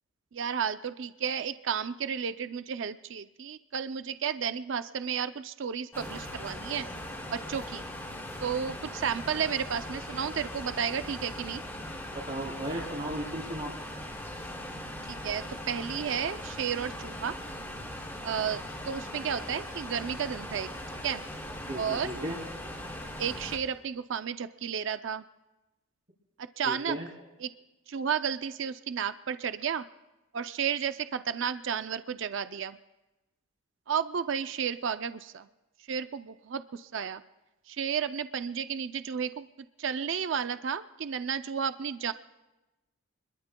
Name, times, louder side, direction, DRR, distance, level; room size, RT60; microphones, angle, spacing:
voice 1, 0.3-6.9 7.3-7.8 8.4-11.6 15.1-17.4 18.2-20.7 21.0-21.2 21.7-22.1 23.2-25.2 26.6-27.0 27.4-27.5 27.9-29.8 30.3-32.8 33.9-35.5 35.9-37.2 37.7-39.5 39.8-42.1, right 7 dB, 60° right, 11 dB, 0.4 m, -32 dB
sound 1, 5.9-23.6, left 1 dB, 10° left, 2.8 m, -40 dB
voice 2, 12.3-13.7 21.6-22.4 26.6-27.1, right 1 dB, 45° right, -4 dB, 3.4 m, -35 dB
29.5 x 21.5 x 2.2 m, 1.0 s
head